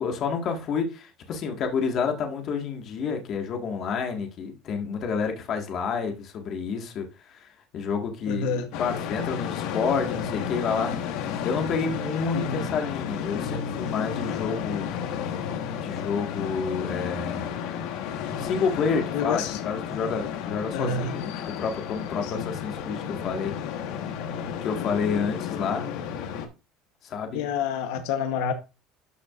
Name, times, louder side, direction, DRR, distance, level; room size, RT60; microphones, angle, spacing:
voice 1, 0.0-7.5 7.7-10.9 11.4-14.9 15.7-17.5 18.3-23.5 24.6-25.8 27.0-27.4, left 5 dB, 40° left, 1.7 m, -29 dB
voice 2, 8.3-8.7 12.3-12.6 19.1-19.6 20.7-21.1 22.2-22.5 27.3-28.5, left 6 dB, 90° left, 1.0 m, -28 dB
sound 1, 8.7-26.5, left 8 dB, 70° left, 1.3 m, -32 dB
12.5 x 6.1 x 2.5 m
cardioid pair, 160°, 0 cm